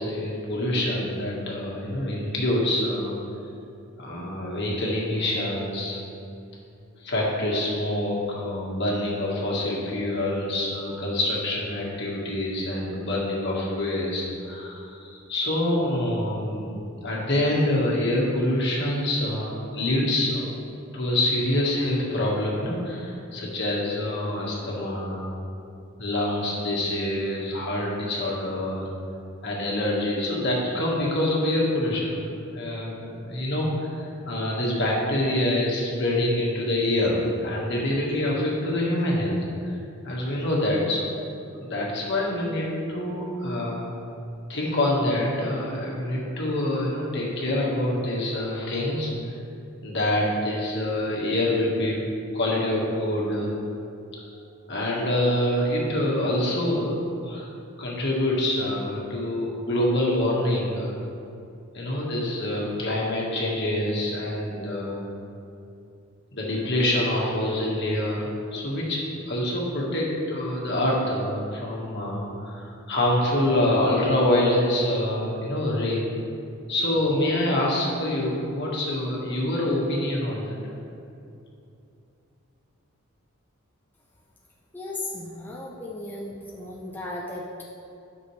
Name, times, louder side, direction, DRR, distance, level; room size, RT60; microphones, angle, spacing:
voice 1, 0.0-3.2 4.0-6.0 7.0-20.5 20.9-25.3 26.0-28.9 29.4-39.4 39.7-39.8 40.0-41.1 41.5-43.9 44.5-49.1 49.8-52.0 52.3-53.5 54.7-57.0 57.2-57.5 57.8-61.0 61.7-65.1 66.3-76.0 76.7-80.7, left 1 dB, 55° left, -4 dB, 1.6 m, -26 dB
voice 2, 84.7-87.6, left 2 dB, 10° left, -4 dB, 0.6 m, -36 dB
10.0 x 6.1 x 3.2 m, 2.7 s
head